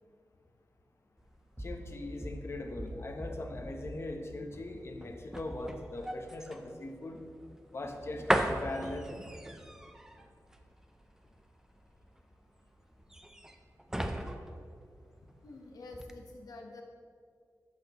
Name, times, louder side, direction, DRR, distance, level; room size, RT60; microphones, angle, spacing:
sound 1, 1.2-15.6 15.9-16.1, right 1 dB, 10° right, 0.5 m, -38 dB
voice 1, 1.6-7.2 7.7-9.3, left 2 dB, 45° left, 3 dB, 0.9 m, -40 dB
voice 2, 15.4-16.8, left 2 dB, 85° left, 1 dB, 1.1 m, -47 dB
13.5 x 5.8 x 3.0 m, 2.2 s
wide cardioid pair, 120°, 6 cm